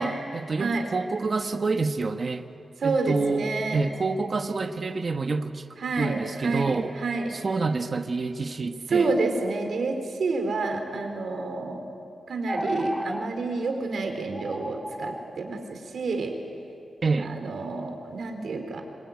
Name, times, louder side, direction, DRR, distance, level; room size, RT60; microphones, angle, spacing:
voice 1, 0.0-2.5 2.8-5.6 6.0-7.0 7.3-9.1 17.0-17.3, right 3 dB, 40° right, 7 dB, 1.2 m, -27 dB
voice 2, 2.8-3.8 5.8-7.3 8.9-11.9 12.3-16.3 17.2-18.8, right 3 dB, 70° right, 5 dB, 4.1 m, -29 dB
sound 1, 12.5-13.3 13.7-13.8 14.3-15.3, equal, ahead, 0.8 m, -33 dB
25.5 x 23.0 x 9.6 m, 2.5 s
wide cardioid pair, 130°, 0 cm